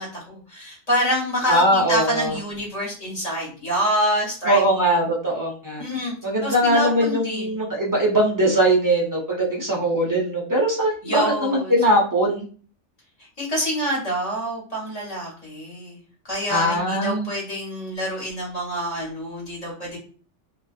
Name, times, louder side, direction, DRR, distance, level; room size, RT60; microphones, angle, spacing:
voice 1, 0.0-5.1 5.8-6.1 6.4-7.7 11.0-11.7 13.2-16.0 16.2-20.0, equal, 35° left, -4 dB, 1.1 m, -27 dB
voice 2, 1.5-2.3 4.5-5.8 6.2-12.4 16.5-17.3, right 1 dB, 30° right, -2 dB, 0.4 m, -21 dB
2.3 x 2.2 x 2.4 m, 0.41 s
omnidirectional pair, 1.2 m